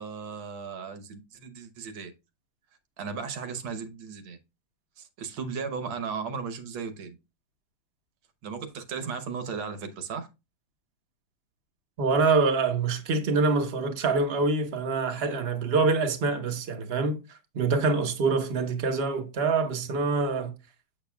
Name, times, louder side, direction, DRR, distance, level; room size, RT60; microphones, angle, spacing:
voice 1, 0.0-2.1 3.0-4.4 5.0-7.2 8.4-10.3, right 5 dB, 75° right, 1.8 m, -36 dB
voice 2, 12.0-17.2 17.5-20.5, right 4 dB, 40° right, 1.0 m, -25 dB
7.7 x 6.8 x 2.3 m
omnidirectional pair, 2.3 m